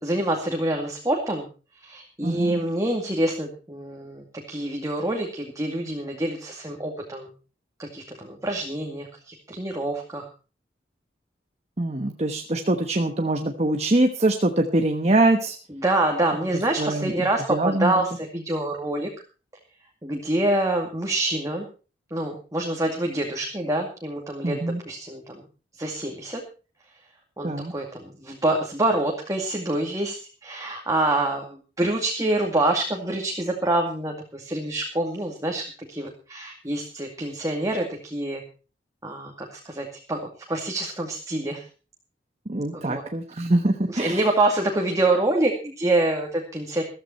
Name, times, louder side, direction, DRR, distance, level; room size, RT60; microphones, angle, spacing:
voice 1, 0.0-1.4 1.8-7.3 7.8-10.3 15.7-19.1 20.0-21.7 22.1-24.6 24.9-25.4 25.8-26.4 27.4-38.4 39.0-40.2 40.5-41.6 42.9-43.0 43.9-46.8, right 1 dB, 20° right, 1 dB, 2.3 m, -26 dB
voice 2, 2.2-2.6 11.8-15.6 16.8-17.1 17.5-17.9 24.4-24.8 27.4-27.7 42.5-44.2, right 2 dB, 35° right, 4 dB, 1.2 m, -23 dB
14.5 x 14.0 x 4.4 m, 0.35 s
head